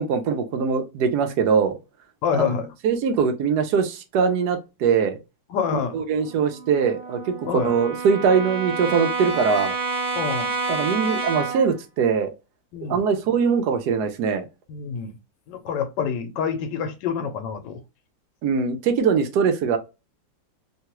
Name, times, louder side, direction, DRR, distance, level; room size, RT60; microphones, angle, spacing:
voice 1, 0.0-1.8 2.3-2.5 2.8-5.2 5.7-9.7 10.7-12.3 12.8-14.5 18.4-19.8, right 6 dB, 75° right, 1.1 m, -22 dB
voice 2, 2.2-2.7 5.5-6.0 7.5-7.7 10.2-10.5 12.7-13.0 14.7-15.2 15.5-17.8, left 7 dB, 80° left, 1.2 m, -27 dB
Brass instrument, 6.2-11.7, right 3 dB, 45° right, 1.0 m, -29 dB
3.1 x 2.3 x 2.9 m
omnidirectional pair, 2.0 m